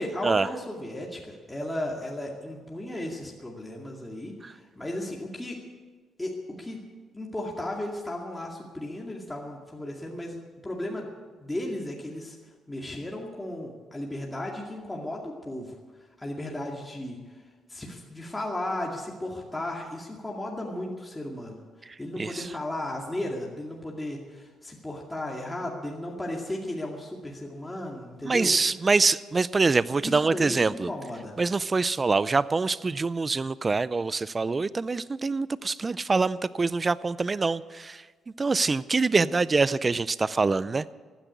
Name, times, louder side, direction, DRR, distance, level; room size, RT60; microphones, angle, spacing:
voice 1, 0.0-5.6 6.2-6.8 7.1-10.3 10.6-11.1 11.4-12.4 12.7-15.8 16.2-17.2 17.7-21.6 22.0-28.5 30.0-30.6 30.9-31.4, left 1 dB, 10° left, -2 dB, 2.3 m, -35 dB
voice 2, 22.2-22.5 28.2-30.9 31.4-38.0 38.4-40.9, right 4 dB, 30° right, 18 dB, 0.5 m, -25 dB
15.0 x 10.0 x 8.4 m, 1.4 s
cardioid pair, 90°, 0 cm